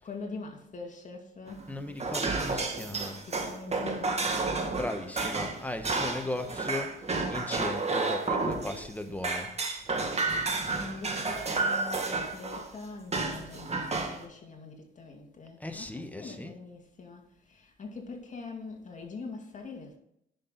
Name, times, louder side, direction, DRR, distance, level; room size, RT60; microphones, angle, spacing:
voice 1, 0.0-1.7 3.2-4.7 10.5-20.0, left 4 dB, 40° left, 2.4 m, -43 dB
sound 1, 1.5-8.9 9.2-12.7 13.1-14.2, right 3 dB, 35° right, 1.9 m, -31 dB
voice 2, 1.7-3.2 4.7-9.5 15.6-16.6, left 1 dB, 10° left, 1.2 m, -37 dB
10.5 x 6.2 x 4.0 m
cardioid pair, 90°, 20 cm